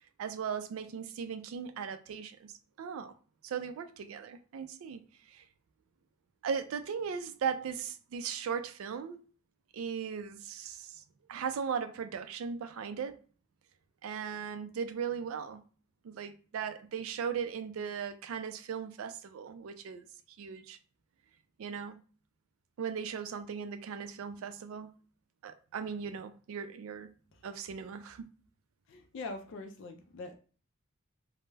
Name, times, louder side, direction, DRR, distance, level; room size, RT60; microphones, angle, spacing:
voice 1, 0.2-2.5 2.8-3.1 3.4-5.0 5.3-5.4 6.4-9.2 9.7-11.0 11.3-13.2 14.0-15.6 16.0-20.0 20.4-20.8 21.6-22.0 22.8-24.9 25.4-27.1 27.4-28.3, right 6 dB, 70° right, 0.3 m, -38 dB
voice 2, 28.9-30.4, left 3 dB, 55° left, 0.3 m, -43 dB
2.2 x 2.0 x 3.1 m
head